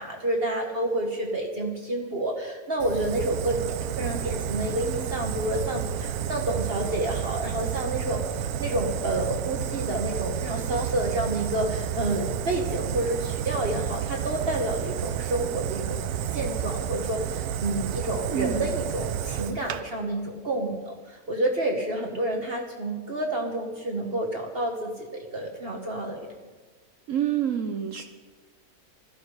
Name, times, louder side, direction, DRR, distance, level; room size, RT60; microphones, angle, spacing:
voice 1, 0.0-16.0 16.3-26.3, right 1 dB, 45° right, 1 dB, 1.4 m, -29 dB
Fire, 2.8-19.8, right 9 dB, 85° right, 1.2 m, -31 dB
voice 2, 18.3-18.6 27.1-28.0, right 9 dB, 65° right, 6 dB, 1.1 m, -27 dB
16.5 x 12.5 x 4.8 m, 1.4 s
omnidirectional pair, 1.5 m